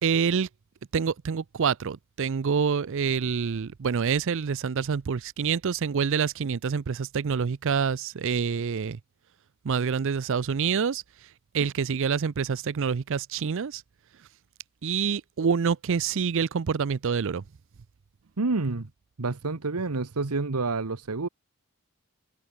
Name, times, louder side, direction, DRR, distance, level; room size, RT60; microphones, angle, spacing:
voice 1, 0.0-0.5 0.9-9.0 9.6-11.3 11.5-13.8 14.8-17.4, right 6 dB, 60° right, 0.5 m, -27 dB
voice 2, 18.4-18.9 19.2-21.3, right 3 dB, 80° right, 1.1 m, -28 dB
head